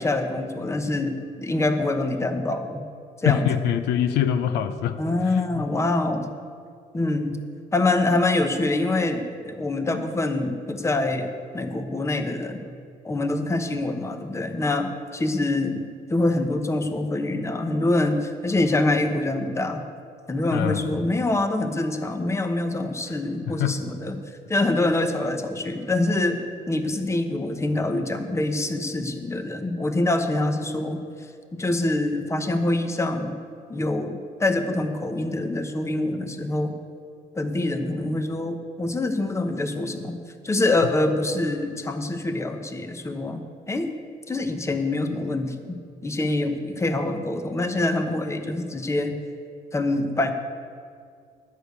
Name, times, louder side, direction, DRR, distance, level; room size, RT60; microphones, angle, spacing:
voice 1, 0.0-2.8 3.2-3.5 5.0-6.3 6.9-7.4 7.7-12.6 13.0-19.8 20.3-24.2 24.5-26.4 26.7-31.0 31.5-33.3 33.7-36.7 37.3-40.2 40.4-43.4 43.7-43.9 44.3-49.1 49.7-50.3, left 2 dB, 15° left, 7 dB, 0.9 m, -25 dB
voice 2, 3.2-5.0 5.2-5.7 20.5-21.0 23.1-23.2 23.5-23.8, left 9 dB, 85° left, 9 dB, 0.6 m, -24 dB
11.0 x 6.6 x 8.2 m, 2.3 s
cardioid pair, 110°, 17 cm